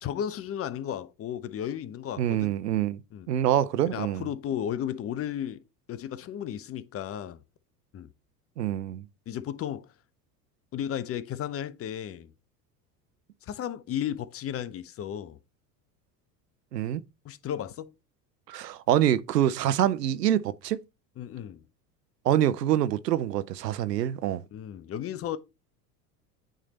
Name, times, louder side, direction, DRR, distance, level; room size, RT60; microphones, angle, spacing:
voice 1, 0.0-2.5 3.1-3.3 3.9-5.6 5.9-7.4 7.9-8.1 9.3-9.9 10.7-12.3 13.4-15.4 17.2-17.9 21.2-21.6 24.5-25.4, left 10 dB, 30° left, 0.5 m, -34 dB
voice 2, 2.2-3.0 3.3-4.3 8.6-9.0 16.7-17.0 18.5-20.8 22.2-24.4, right 11 dB, 90° right, 0.6 m, -25 dB
8.9 x 3.3 x 4.0 m
hypercardioid pair, 75°, 48 cm